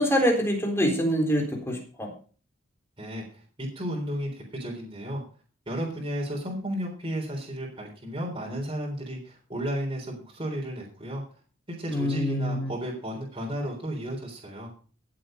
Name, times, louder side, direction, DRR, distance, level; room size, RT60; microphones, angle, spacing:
voice 1, 0.0-2.1 11.9-12.7, equal, 10° left, 2 dB, 3.8 m, -25 dB
voice 2, 3.0-5.2 5.7-11.2 11.7-14.7, equal, 25° right, -3 dB, 3.8 m, -33 dB
17.0 x 7.7 x 5.1 m, 0.39 s
head